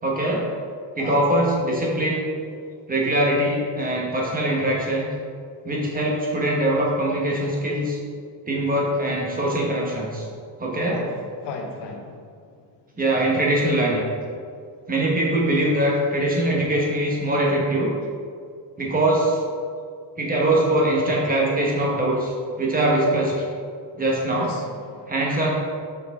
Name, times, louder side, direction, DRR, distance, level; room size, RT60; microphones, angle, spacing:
voice 1, 0.0-0.4 1.0-2.2 2.9-5.1 5.6-8.0 8.5-10.3 10.6-11.0 13.0-14.1 14.9-17.9 18.8-19.4 20.2-23.5 24.0-24.5 25.1-25.5, right 1 dB, 20° right, -3 dB, 1.1 m, -22 dB
voice 2, 11.4-12.2 24.3-25.1, left 4 dB, 70° left, 3 dB, 0.9 m, -35 dB
6.0 x 5.9 x 3.6 m, 2.2 s
cardioid pair, 160°, 43 cm